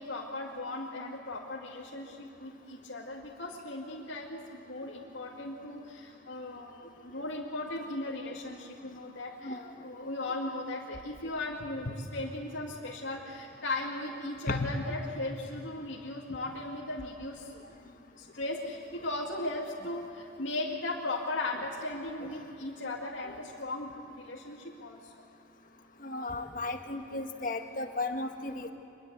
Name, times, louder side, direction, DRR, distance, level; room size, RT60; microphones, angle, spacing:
voice 1, 0.0-17.5 17.8-25.1, left 2 dB, 85° left, -3 dB, 2.3 m, -37 dB
voice 2, 26.0-28.7, left 2 dB, 45° left, 5 dB, 1.7 m, -34 dB
25.0 x 22.0 x 8.2 m, 2.8 s
head